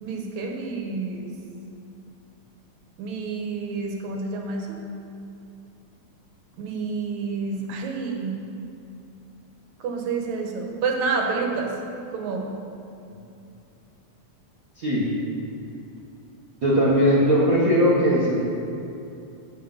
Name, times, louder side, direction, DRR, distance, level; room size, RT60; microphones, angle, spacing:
voice 1, 0.0-1.4 3.0-4.8 6.6-8.4 9.8-11.7 12.1-12.5, right 4 dB, 75° right, 1 dB, 2.3 m, -29 dB
voice 2, 14.8-15.1 16.6-18.4, equal, 55° right, -6 dB, 0.9 m, -19 dB
8.0 x 6.4 x 5.5 m, 2.7 s
omnidirectional pair, 3.4 m